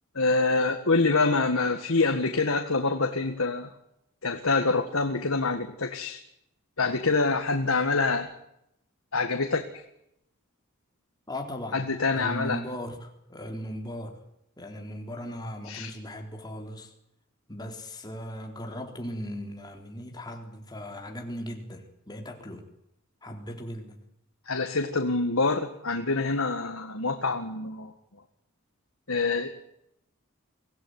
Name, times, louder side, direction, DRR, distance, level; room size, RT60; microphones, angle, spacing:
voice 1, 0.2-3.7 4.2-6.2 6.8-8.3 9.1-9.8 11.7-12.6 15.7-15.9 24.5-27.9 29.1-29.5, left 3 dB, 75° left, 6 dB, 1.9 m, -26 dB
voice 2, 11.3-11.8 12.1-14.2 14.6-16.9 17.5-22.7 23.2-24.0, equal, 20° left, 3 dB, 3.9 m, -38 dB
24.5 x 17.0 x 9.7 m, 0.80 s
head